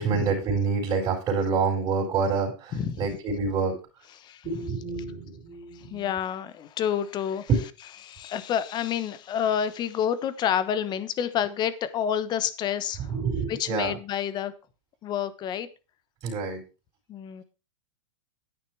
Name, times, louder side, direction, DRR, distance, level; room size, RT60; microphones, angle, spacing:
voice 1, 0.0-3.7 4.4-6.1 7.5-7.6 13.1-14.0 16.2-16.6, right 5 dB, 25° right, 4.4 m, -27 dB
voice 2, 2.7-3.0 4.2-4.5 5.7-7.5 8.0-13.2 13.5-14.5 15.0-15.7 17.1-17.4, left 9 dB, 25° left, 1.1 m, -29 dB
9.8 x 9.5 x 4.6 m
supercardioid pair, 140°, 16 cm